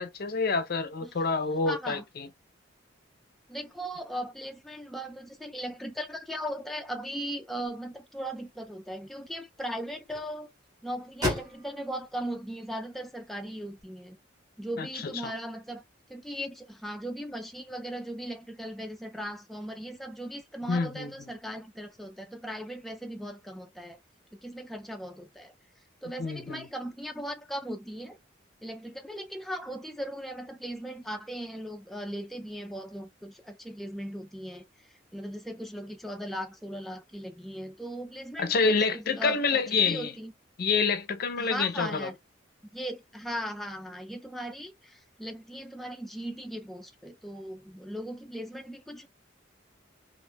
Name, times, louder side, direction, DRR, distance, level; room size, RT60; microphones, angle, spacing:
voice 1, 0.0-2.3 14.8-14.9 15.2-15.3 20.7-21.1 26.2-26.7 38.4-40.1 40.6-42.1, left 4 dB, 55° left, 0.5 m, -27 dB
voice 2, 1.6-2.0 3.5-10.5 10.8-14.2 14.6-15.8 16.1-24.0 24.3-25.5 26.0-28.2 28.6-34.6 35.1-40.3 41.4-42.2 42.7-49.1, equal, ahead, 0.3 m, -38 dB
sound 1, 7.7-13.8, left 1 dB, 20° right, 1.7 m, -40 dB
4.5 x 2.4 x 2.2 m
head